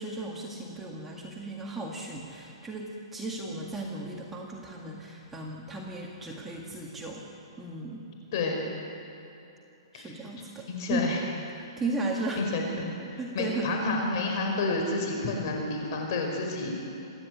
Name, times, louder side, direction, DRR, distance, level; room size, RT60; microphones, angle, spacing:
voice 1, 0.0-7.3 7.6-8.0 9.9-11.1 11.6-12.4 13.2-13.8, right 2 dB, 10° right, -2 dB, 2.0 m, -35 dB
voice 2, 8.3-8.6 9.9-10.1 10.7-11.2 12.4-12.9 13.3-16.7, left 3 dB, 45° left, 1 dB, 5.3 m, -29 dB
27.0 x 10.5 x 9.4 m, 2.9 s
hypercardioid pair, 160°, 3 cm